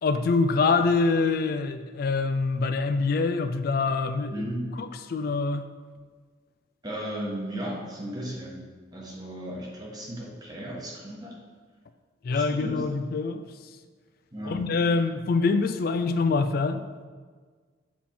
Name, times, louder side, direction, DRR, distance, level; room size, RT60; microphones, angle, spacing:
voice 1, 0.0-4.3 4.8-5.6 12.2-13.4 14.5-16.8, left 4 dB, 50° left, 9 dB, 0.3 m, -25 dB
voice 2, 4.3-4.6 6.8-11.4 12.3-12.8 14.3-15.0, equal, 20° right, -3 dB, 1.2 m, -36 dB
7.3 x 4.3 x 4.3 m, 1.5 s
head